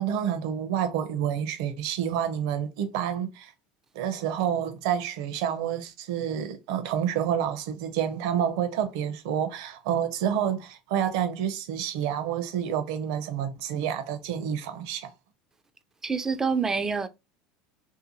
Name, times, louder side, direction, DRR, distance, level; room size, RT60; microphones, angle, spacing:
voice 1, 0.0-3.5 3.9-15.1, right 9 dB, 75° right, 0.7 m, -28 dB
voice 2, 16.0-17.1, right 5 dB, 15° right, 0.3 m, -26 dB
2.7 x 2.2 x 2.9 m
supercardioid pair, 115°, 3 cm